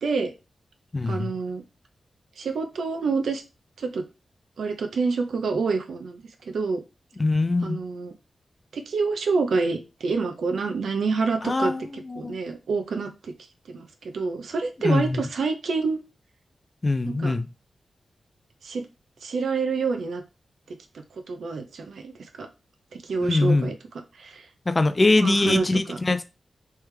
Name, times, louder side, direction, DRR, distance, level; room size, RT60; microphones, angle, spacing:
voice 1, 0.0-0.3 1.1-1.6 2.4-3.4 3.8-4.0 4.6-6.8 7.6-8.1 8.7-13.3 13.7-16.0 17.0-17.4 18.6-18.9 19.2-20.2 21.3-22.5 22.9-23.8 24.1-24.5 25.2-26.0, right 4 dB, 75° right, 0.6 m, -27 dB
voice 2, 0.9-1.3 7.2-7.8 11.4-11.8 12.1-12.4 14.8-15.3 16.8-17.5 23.2-23.7 24.7-26.2, left 2 dB, 20° left, 0.3 m, -22 dB
3.3 x 3.3 x 3.2 m
wide cardioid pair, 180°, 0 cm